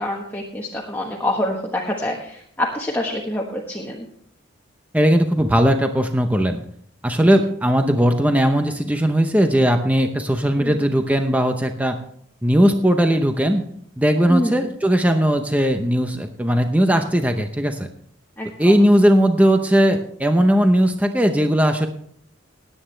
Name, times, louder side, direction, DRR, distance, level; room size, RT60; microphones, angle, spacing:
voice 1, 0.0-4.1 10.6-10.8 14.3-14.6 18.4-18.7, left 1 dB, 10° left, -1 dB, 1.3 m, -26 dB
voice 2, 4.9-6.6 7.0-12.0 12.4-13.6 14.0-17.9 18.6-21.9, equal, 5° right, 5 dB, 0.7 m, -18 dB
18.5 x 9.0 x 3.3 m, 0.63 s
head